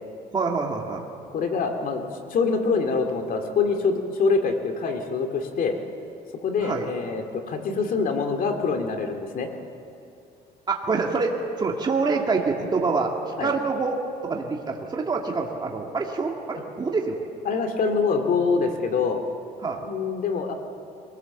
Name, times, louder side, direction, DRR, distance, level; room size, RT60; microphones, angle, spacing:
voice 1, 0.3-1.0 6.6-6.9 10.7-13.1 13.4-17.2 19.6-19.9, right 4 dB, 25° right, 0 dB, 2.0 m, -26 dB
voice 2, 1.3-2.0 2.3-5.8 6.4-9.5 13.4-13.5 17.5-19.2 19.8-20.5, left 4 dB, 55° left, 4 dB, 2.4 m, -25 dB
23.5 x 18.0 x 7.1 m, 2.8 s
cardioid pair, 110°, 17 cm